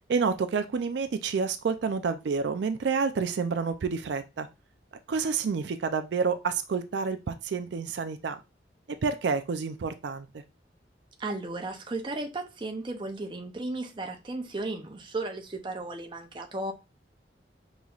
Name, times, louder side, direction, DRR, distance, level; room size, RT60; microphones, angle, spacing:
voice 1, 0.1-4.5 5.1-7.2 7.4-8.4 9.0-10.3, right 5 dB, 70° right, 0.4 m, -29 dB
voice 2, 11.2-16.7, right 2 dB, 25° right, 0.6 m, -35 dB
5.3 x 3.0 x 2.4 m
head